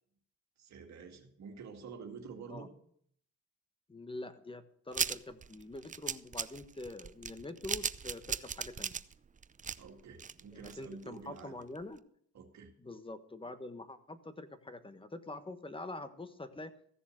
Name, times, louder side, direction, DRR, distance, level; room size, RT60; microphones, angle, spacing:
voice 1, 0.6-2.7 9.8-11.6 12.3-12.7, right 5 dB, 65° right, 4 dB, 2.2 m, -48 dB
voice 2, 3.9-9.0 10.5-12.0 12.8-16.7, left 2 dB, 15° left, 11 dB, 1.3 m, -45 dB
sound 1, 4.9-11.0 11.4-11.5 11.8-11.9, right 6 dB, 25° right, 0.5 m, -37 dB
15.5 x 7.0 x 6.6 m, 0.64 s
cardioid pair, 90°, 30 cm